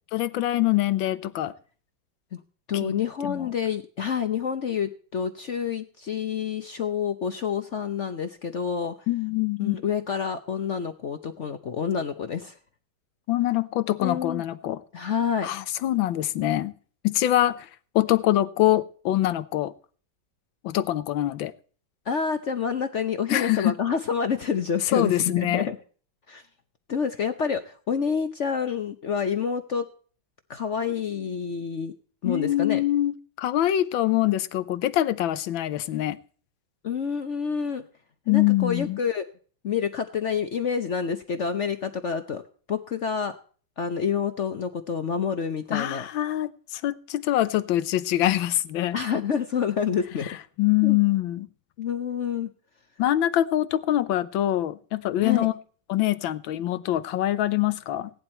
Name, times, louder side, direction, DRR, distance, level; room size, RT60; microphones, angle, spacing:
voice 1, 0.1-1.5 2.7-2.9 3.2-3.5 9.1-9.8 13.3-14.8 15.4-16.7 17.0-17.7 17.9-19.7 20.6-21.5 23.3-23.8 24.9-25.7 32.2-36.2 38.3-39.0 45.7-49.0 50.2-51.5 53.0-55.5 55.9-58.1, left 14 dB, 90° left, 1.5 m, -24 dB
voice 2, 2.7-8.9 9.6-12.5 14.0-14.4 14.9-15.5 22.1-25.8 26.3-26.4 26.9-29.9 30.5-31.9 32.2-32.8 36.8-37.8 38.3-39.3 39.6-42.4 42.7-43.4 43.8-46.1 48.9-50.4 50.8-51.0 51.8-52.5 55.2-55.5, left 7 dB, 55° left, 0.8 m, -28 dB
17.0 x 10.5 x 4.4 m
omnidirectional pair, 2.1 m